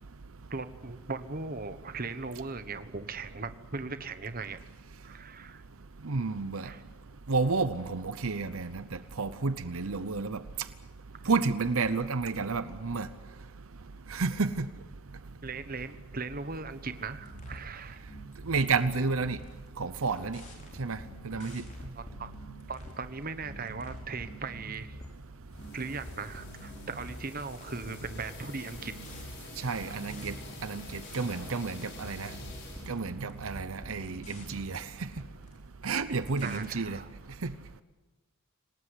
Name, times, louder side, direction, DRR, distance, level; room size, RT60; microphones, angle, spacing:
voice 1, 0.5-4.6 5.0-5.6 6.6-6.8 11.2-11.3 15.4-18.0 21.4-21.5 21.9-22.3 22.7-25.0 25.7-28.9 29.8-30.0 32.3-32.4 36.4-37.1, right 4 dB, 40° right, 11 dB, 1.2 m, -39 dB
voice 2, 6.0-6.7 7.3-8.8 9.2-10.4 11.3-13.1 14.1-14.7 18.5-19.4 19.8-20.4 20.8-21.0 21.2-21.6 29.6-30.3 30.6-32.3 32.9-34.9 35.8-37.0 37.4-37.5, right 4 dB, 70° right, 12 dB, 0.8 m, -30 dB
sound 1, 17.2-17.7 18.1-19.7 20.0-23.0 23.4-25.2 25.5-31.5 32.0-35.6 35.8-36.7, equal, 35° left, 5.3 m, -47 dB
sound 2, 25.5-32.9, left 2 dB, 50° left, 6.2 m, -48 dB
26.5 x 18.5 x 8.2 m, 1.2 s
head